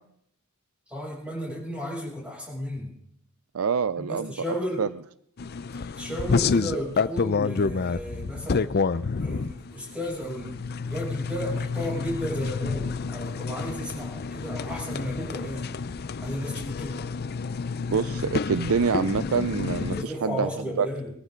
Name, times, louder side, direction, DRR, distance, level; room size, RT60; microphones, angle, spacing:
voice 1, 0.9-2.9 3.9-4.8 5.7-8.8 9.2-15.7 16.2-17.0 19.9-21.1, equal, 5° right, -4 dB, 6.9 m, -34 dB
voice 2, 3.5-4.3 4.8-4.9 17.9-20.5 20.8-20.9, right 6 dB, 75° right, 15 dB, 0.5 m, -26 dB
sound 1, 5.4-20.0, left 4 dB, 45° left, 0.5 m, -29 dB
22.0 x 14.0 x 3.8 m, 0.70 s
head